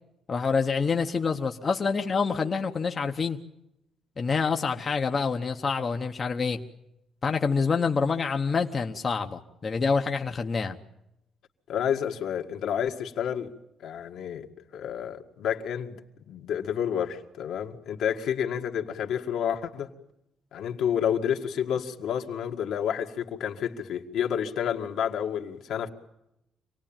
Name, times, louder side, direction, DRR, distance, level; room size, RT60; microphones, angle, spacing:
voice 1, 0.3-3.4 4.2-6.6 7.2-10.8, left 5 dB, 30° left, 4 dB, 1.0 m, -27 dB
voice 2, 11.7-13.5 13.8-14.5 14.7-16.0 16.3-19.9 20.5-25.9, left 9 dB, 65° left, 3 dB, 2.0 m, -29 dB
26.5 x 19.0 x 8.9 m, 0.87 s
cardioid pair, 160°, 0 cm